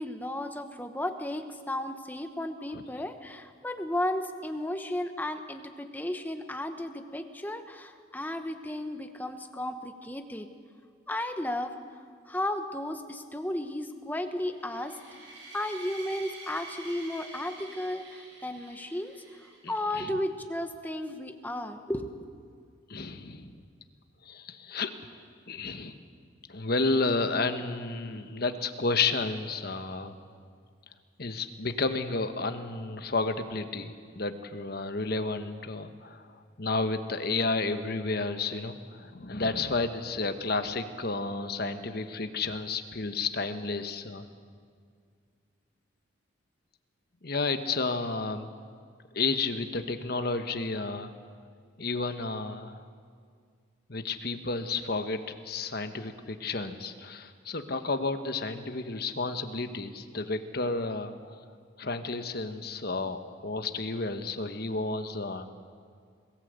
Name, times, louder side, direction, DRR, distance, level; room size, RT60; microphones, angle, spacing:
voice 1, 0.0-10.5 11.1-11.7 12.3-15.0 15.5-19.1 19.7-22.3, left 1 dB, 10° left, 7 dB, 1.0 m, -34 dB
sound 1, 14.5-19.8, right 2 dB, 65° right, 7.8 m, -47 dB
voice 2, 19.6-20.1 22.9-23.6 24.2-24.9 25.5-25.9 26.5-30.1 31.2-36.3 36.6-44.3 47.2-48.5 49.1-51.1 51.8-52.8 53.9-61.4 61.8-65.5, left 3 dB, 50° left, 8 dB, 1.2 m, -31 dB
22.0 x 15.0 x 8.1 m, 2.1 s
head